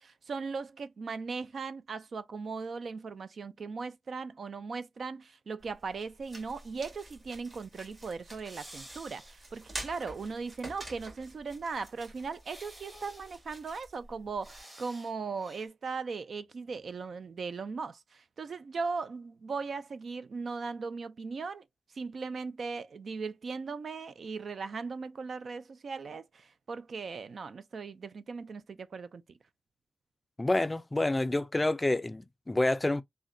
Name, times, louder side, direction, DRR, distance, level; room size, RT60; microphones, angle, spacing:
voice 1, 0.0-21.6 21.9-29.2, right 4 dB, 65° right, 0.4 m, -38 dB
sound 1, 5.6-14.6, right 1 dB, 40° right, 2.0 m, -48 dB
sound 2, 8.4-10.5 10.8-10.9 12.4-13.5 14.4-15.1 15.4-15.7, right 1 dB, 20° right, 1.2 m, -52 dB
voice 2, 30.4-33.0, left 2 dB, 20° left, 0.3 m, -28 dB
3.7 x 2.1 x 2.5 m
cardioid pair, 75°, 0 cm